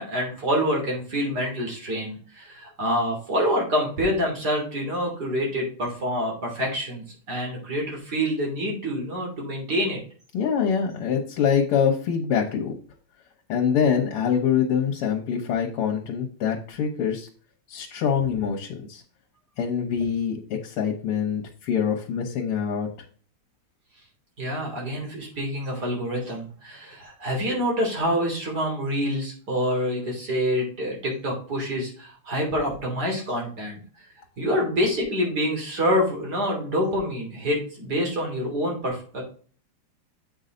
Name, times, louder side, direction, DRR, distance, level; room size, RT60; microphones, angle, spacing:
voice 1, 0.0-10.0 24.4-33.8 34.4-39.2, equal, 45° right, -1 dB, 3.6 m, -26 dB
voice 2, 10.3-12.7 13.5-17.3 17.7-19.0 19.6-22.9, left 7 dB, 85° left, 1 dB, 2.1 m, -24 dB
8.1 x 5.6 x 3.9 m, 0.43 s
omnidirectional pair, 2.4 m